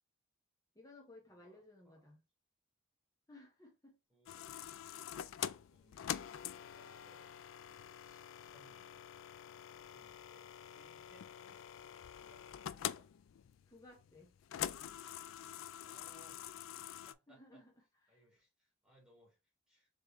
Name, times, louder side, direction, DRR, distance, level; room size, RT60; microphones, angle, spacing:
voice 1, 0.7-2.2 3.3-4.0 4.3-4.4 13.7-14.3 17.3-17.7 18.0-18.2, left 2 dB, 15° left, 1.3 m, -59 dB
voice 2, 1.3-2.1 4.1-4.7 5.1-9.1 9.6-10.5 10.7-11.7 12.2-13.1 15.8-16.5 17.1-17.6 18.1-19.4 19.7-19.9, equal, 5° right, 1.8 m, -68 dB
sound 1, 4.3-17.1, left 10 dB, 80° left, 0.3 m, -46 dB
3.6 x 3.3 x 3.1 m
head